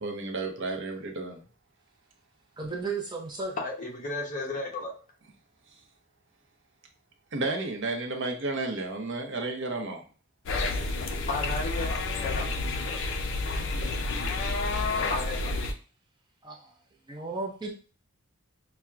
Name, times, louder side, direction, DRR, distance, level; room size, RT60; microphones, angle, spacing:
voice 1, 0.0-1.4 7.3-10.0, right 3 dB, 55° right, 2 dB, 0.7 m, -32 dB
voice 2, 2.6-3.6 16.4-16.7 17.1-17.7, right 3 dB, 20° right, -1 dB, 0.5 m, -34 dB
voice 3, 3.6-4.9 11.3-12.5 15.1-15.5, left 2 dB, 35° left, -1 dB, 0.9 m, -33 dB
sound 1, 10.5-15.7, left 3 dB, 60° left, 0.5 m, -30 dB
5.6 x 2.1 x 2.4 m, 0.38 s
head